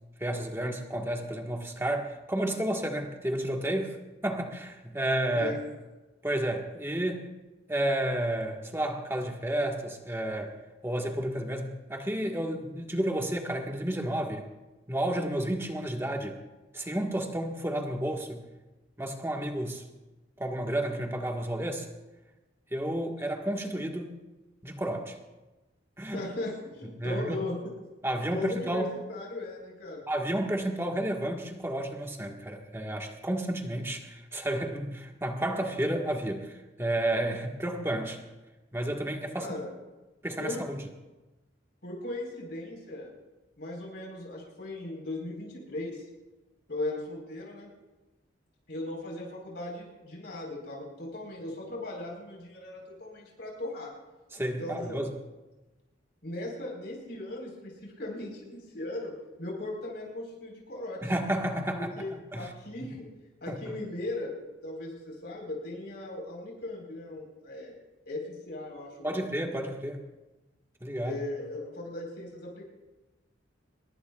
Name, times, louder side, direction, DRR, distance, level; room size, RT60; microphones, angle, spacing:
voice 1, 0.2-4.0 4.2-5.5 6.2-7.3 7.7-10.6 10.8-14.4 14.9-16.4 16.7-18.4 19.0-19.8 20.4-21.9 22.7-24.2 24.6-25.2 26.0-26.2 27.0-27.4 28.0-28.9 30.1-38.2 38.7-39.5 40.2-40.9 54.3-55.1 61.0-62.5 63.5-63.6 69.0-70.0 70.8-71.2, right 1 dB, 15° right, 2 dB, 1.5 m, -31 dB
voice 2, 26.1-27.6 28.3-30.0 39.3-39.7 40.4-40.7 41.8-43.1 43.6-46.0 46.7-47.7 48.7-53.9 54.6-55.0 56.2-61.0 61.7-63.0 63.4-64.3 64.6-67.7 68.1-69.2 71.0-72.6, left 2 dB, 60° left, -1 dB, 4.3 m, -38 dB
23.0 x 21.0 x 2.4 m, 1.1 s
head